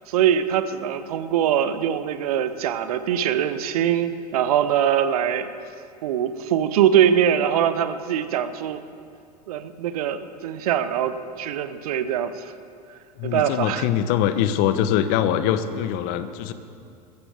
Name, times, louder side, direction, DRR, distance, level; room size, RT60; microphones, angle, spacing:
voice 1, 0.1-5.5 6.0-8.8 9.5-12.5 13.2-13.9, right 9 dB, 65° right, 12 dB, 0.9 m, -22 dB
voice 2, 13.2-16.5, left 10 dB, 50° left, 11 dB, 1.0 m, -23 dB
21.5 x 15.0 x 3.5 m, 2.4 s
figure-of-eight pair, 80°, 21 cm